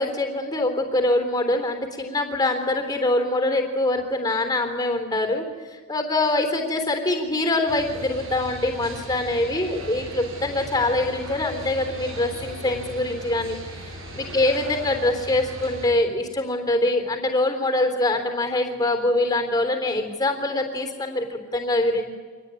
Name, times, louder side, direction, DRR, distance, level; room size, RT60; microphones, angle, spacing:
voice 1, 0.0-5.4 5.7-13.6 14.2-22.1, left 2 dB, 20° left, 5 dB, 3.5 m, -24 dB
sound 1, 7.7-15.9, right 1 dB, 70° right, 7.5 m, -38 dB
26.0 x 19.5 x 9.5 m, 1.5 s
head